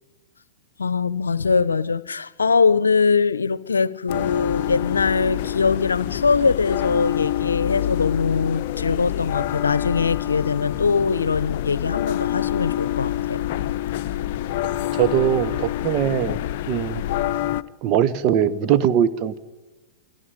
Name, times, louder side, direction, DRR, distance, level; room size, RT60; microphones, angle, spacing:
voice 1, 0.8-13.5, left 5 dB, 85° left, 0.7 m, -22 dB
sound 1, 4.1-17.6, left 13 dB, 55° left, 0.7 m, -26 dB
voice 2, 14.9-17.0 17.8-19.4, right 10 dB, 45° right, 1.3 m, -21 dB
29.0 x 25.0 x 5.1 m
hypercardioid pair, 105°, 0 cm